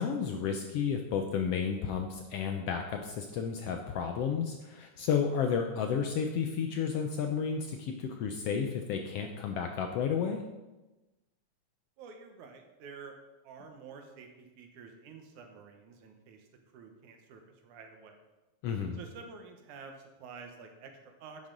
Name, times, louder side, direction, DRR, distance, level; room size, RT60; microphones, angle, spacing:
voice 1, 0.0-10.4 18.6-19.0, left 6 dB, 75° left, 4 dB, 1.4 m, -32 dB
voice 2, 12.0-13.1 13.4-18.2 18.9-21.5, right 5 dB, 80° right, 4 dB, 2.5 m, -50 dB
10.5 x 8.6 x 3.9 m, 1.1 s
omnidirectional pair, 3.5 m